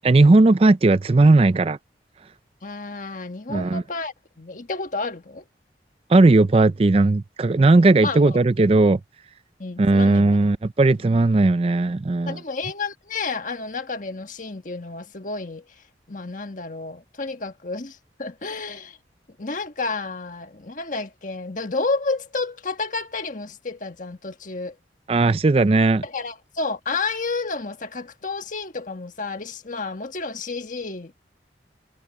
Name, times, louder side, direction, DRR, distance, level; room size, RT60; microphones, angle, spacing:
voice 1, 0.0-1.8 3.5-3.8 6.1-9.0 9.8-12.4 25.1-26.0, right 2 dB, 35° right, 0.4 m, -17 dB
voice 2, 2.6-5.4 8.0-8.4 9.6-10.4 11.0-11.3 12.3-15.6 16.1-19.0 19.4-24.7 26.0-31.1, left 3 dB, 45° left, 1.6 m, -31 dB
head